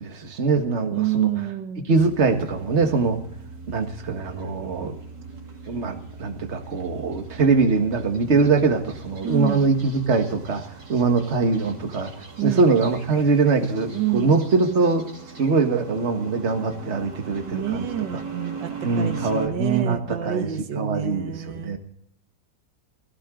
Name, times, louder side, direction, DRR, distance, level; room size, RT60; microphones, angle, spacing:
voice 1, 0.0-1.3 1.9-3.2 3.7-5.0 5.7-12.1 12.4-15.1 15.4-17.9 18.1-18.2 18.8-20.5 20.7-21.8, right 4 dB, 40° right, 5 dB, 1.8 m, -22 dB
voice 2, 0.9-1.9 9.2-9.7 12.4-12.7 13.9-14.3 17.4-21.8, right 12 dB, 90° right, 9 dB, 1.7 m, -28 dB
sound 1, 1.9-19.5, right 5 dB, 70° right, 3.4 m, -40 dB
17.5 x 16.0 x 3.8 m, 0.64 s
omnidirectional pair, 1.9 m